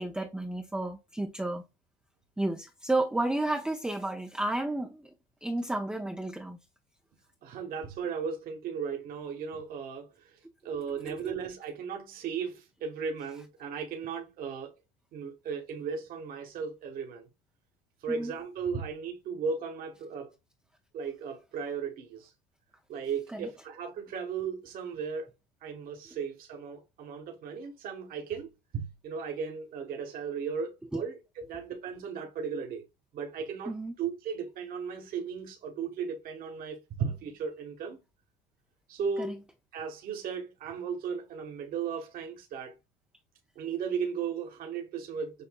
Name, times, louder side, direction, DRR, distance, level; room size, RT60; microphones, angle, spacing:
voice 1, 0.0-1.6 2.4-5.1 5.4-6.6 11.0-11.1 18.1-18.3 23.3-23.5 30.9-31.0 33.7-33.9 39.2-39.3, right 2 dB, 5° right, 0.5 m, -32 dB
voice 2, 7.4-14.7 15.1-17.3 18.0-20.3 20.9-22.3 22.9-25.3 25.6-32.8 33.1-38.0 38.9-39.4 39.7-42.7 43.5-45.5, right 6 dB, 50° right, 1.4 m, -36 dB
6.9 x 2.6 x 2.3 m
supercardioid pair, 110°, 19 cm